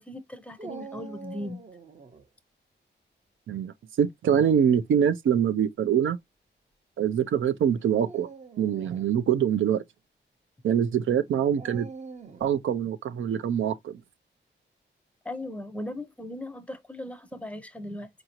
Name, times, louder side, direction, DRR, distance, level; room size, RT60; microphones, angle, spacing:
voice 1, 0.1-1.6 15.2-18.1, left 1 dB, 5° left, 0.6 m, -38 dB
Dog, 0.6-2.3 4.3-4.8 5.6-5.7 7.8-9.1 11.6-12.6, right 4 dB, 35° right, 0.6 m, -44 dB
voice 2, 3.5-6.2 7.0-8.3 8.6-9.8 10.6-11.9 12.4-14.0, right 8 dB, 85° right, 0.5 m, -24 dB
4.8 x 2.6 x 2.9 m
wide cardioid pair, 150°, 20 cm